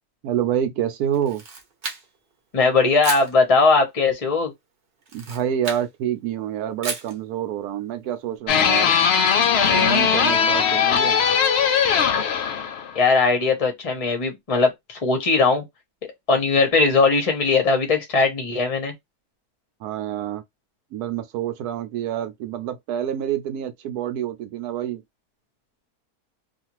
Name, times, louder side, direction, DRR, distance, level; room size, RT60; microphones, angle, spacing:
voice 1, 0.2-1.4 5.1-9.0 9.6-11.2 19.8-20.4 20.9-25.0, right 10 dB, 80° right, 1.1 m, -27 dB
Camera, 1.1-2.3 3.0-3.3 5.0-5.9 6.8-7.2, right 4 dB, 45° right, 0.8 m, -32 dB
voice 2, 2.5-4.5 12.9-15.6 16.3-18.9, left 4 dB, 35° left, 0.6 m, -19 dB
sound 1, 8.5-13.0, left 7 dB, 75° left, 0.6 m, -19 dB
2.5 x 2.5 x 2.9 m
omnidirectional pair, 1.6 m